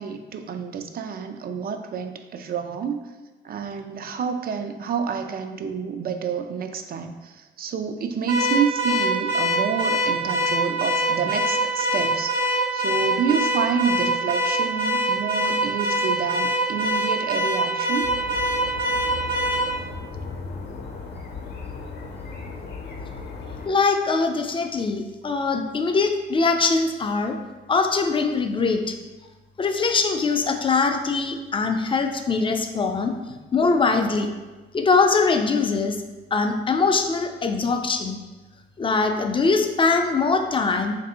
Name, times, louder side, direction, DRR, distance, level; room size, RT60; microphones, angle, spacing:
voice 1, 0.0-3.1 3.4-18.1, right 6 dB, 50° right, 7 dB, 0.4 m, -28 dB
Car / Alarm, 8.3-19.7, right 1 dB, 85° right, 1.0 m, -23 dB
sound 1, 18.0-23.7, left 4 dB, 55° left, 0.7 m, -36 dB
voice 2, 23.7-27.4 27.7-29.0 29.6-33.1 33.5-34.3 34.7-36.0 36.3-38.2 38.8-41.0, left 4 dB, 25° left, 5 dB, 0.4 m, -22 dB
3.4 x 2.6 x 4.2 m, 1.2 s
cardioid pair, 90°, 20 cm